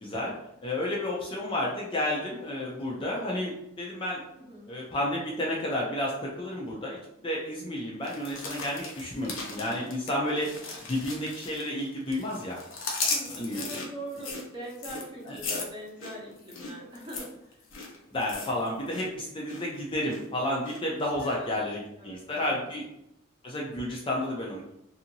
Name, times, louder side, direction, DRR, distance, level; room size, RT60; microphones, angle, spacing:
voice 1, 0.0-0.3 0.6-3.5 3.8-4.2 4.7-7.0 7.2-10.5 10.9-12.6 13.3-13.7 15.3-15.4 18.1-22.8 23.4-24.7, left 1 dB, 25° left, -3 dB, 0.4 m, -31 dB
voice 2, 4.3-4.7 13.1-17.6 21.2-21.6 22.0-22.7, right 1 dB, 25° right, -4 dB, 0.7 m, -42 dB
sound 1, 8.0-11.8 12.1-19.1 19.3-19.7 20.1-20.8 21.2-21.3, left 3 dB, 65° left, 0.6 m, -37 dB
2.7 x 2.7 x 2.6 m, 0.81 s
head